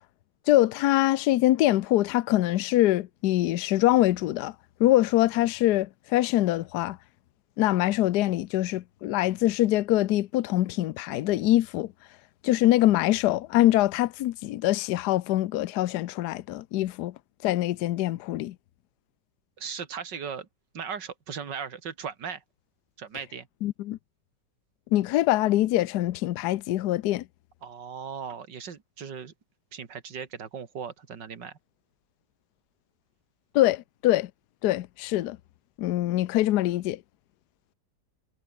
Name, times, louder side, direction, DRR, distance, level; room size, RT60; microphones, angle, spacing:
voice 1, 0.5-4.5 4.8-7.0 7.6-11.9 12.4-17.1 17.4-18.5 23.6-24.0 24.9-27.2 33.5-34.3 34.6-35.4 35.8-37.0, left 15 dB, 75° left, 1.2 m, -24 dB
voice 2, 19.6-20.5 20.7-22.4 23.0-23.5 27.6-29.3 29.7-31.6, right 6 dB, 85° right, 2.7 m, -37 dB
omnidirectional pair, 1.9 m